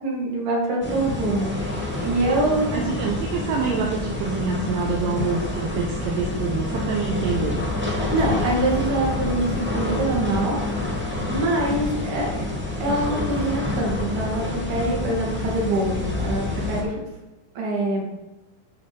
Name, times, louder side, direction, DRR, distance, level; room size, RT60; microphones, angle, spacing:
voice 1, 0.0-2.7 8.0-10.6 11.0-12.5 12.8-17.0 17.6-18.0, right 1 dB, 55° right, -3 dB, 3.6 m, -25 dB
sound 1, 0.8-16.8, left 2 dB, 10° right, 0.5 m, -28 dB
voice 2, 2.7-7.6, right 5 dB, 70° right, -1 dB, 2.4 m, -26 dB
11.5 x 5.4 x 5.2 m, 1.0 s
omnidirectional pair, 4.5 m